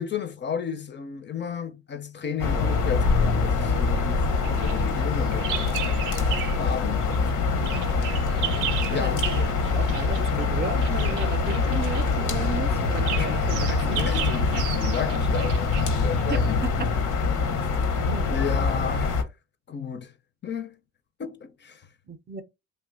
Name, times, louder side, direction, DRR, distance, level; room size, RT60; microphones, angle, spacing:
voice 1, 0.0-5.8 6.1-7.8 8.9-9.3 10.3-10.4 13.2-13.3 13.6-16.7 17.6-17.7 18.3-19.3 19.7-20.1 20.4-20.8 21.2-21.9, left 7 dB, 40° left, 0.5 m, -33 dB
sound 1, 2.4-19.2, left 4 dB, 85° left, 0.8 m, -24 dB
Bird vocalization bird call bird song, 4.4-6.7 7.0-16.5, right 11 dB, 85° right, 0.5 m, -36 dB
voice 2, 8.7-9.3 9.7-14.1 16.3-16.9 18.0-18.3 22.1-22.4, right 5 dB, 35° right, 0.5 m, -34 dB
2.8 x 2.2 x 3.8 m
cardioid pair, 90°, 30 cm